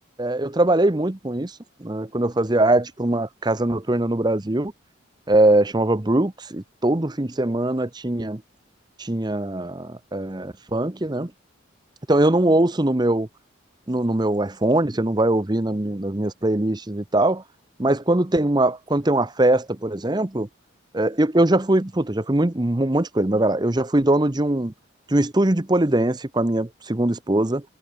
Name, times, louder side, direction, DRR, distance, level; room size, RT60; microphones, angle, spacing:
voice 1, 0.2-1.5 1.8-4.7 5.3-8.4 9.0-11.3 12.1-13.3 13.9-17.4 17.8-20.5 20.9-24.7 25.1-27.6, right 1 dB, 20° right, 0.8 m, -21 dB
head